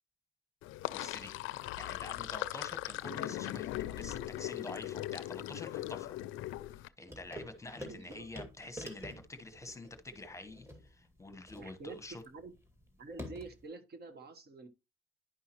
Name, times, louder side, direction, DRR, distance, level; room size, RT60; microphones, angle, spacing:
Sink (filling or washing), 0.6-6.9, left 15 dB, 90° left, 0.4 m, -39 dB
voice 1, 0.9-1.4 1.8-6.2 7.0-12.2, left 2 dB, 15° left, 1.1 m, -47 dB
sound 1, 7.1-13.7, equal, 15° right, 2.2 m, -49 dB
voice 2, 7.8-8.3 11.6-12.5 13.0-14.7, right 3 dB, 55° right, 1.3 m, -48 dB
10.5 x 5.5 x 3.0 m
cardioid pair, 90°, 20 cm